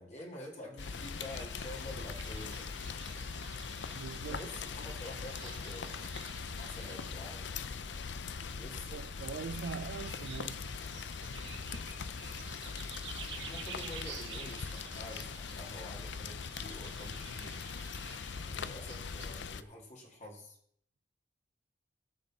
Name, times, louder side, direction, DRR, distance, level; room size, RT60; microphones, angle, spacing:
voice 1, 0.0-2.7 4.2-6.1 6.6-7.6 8.5-8.9 13.4-17.6 18.5-20.6, left 1 dB, 40° left, 2.1 m, -48 dB
Rain, 0.8-19.6, left 6 dB, 75° left, 0.5 m, -41 dB
sound 1, 0.8-19.5, right 5 dB, 90° right, 1.6 m, -50 dB
voice 2, 3.9-4.4 8.9-10.7, right 6 dB, 65° right, 0.3 m, -42 dB
18.5 x 6.7 x 4.1 m
head